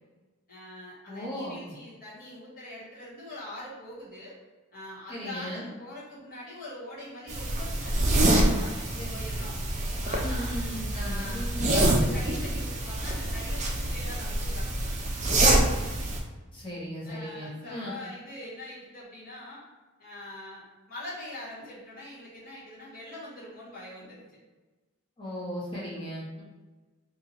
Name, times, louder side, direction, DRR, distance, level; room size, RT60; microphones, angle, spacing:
voice 1, 0.5-4.3 4.7-9.5 10.0-10.5 10.9-11.4 11.7-15.0 17.0-19.6 20.0-24.2 25.7-26.1, left 1 dB, 40° left, -9 dB, 1.4 m, -43 dB
voice 2, 1.1-1.6 5.1-5.7 9.0-9.1 10.2-11.8 16.5-17.9 25.2-26.4, left 1 dB, 25° left, -7 dB, 1.2 m, -37 dB
sound 1, 7.3-16.2, right 1 dB, 30° right, 0.5 m, -26 dB
2.7 x 2.6 x 4.2 m, 1.2 s
head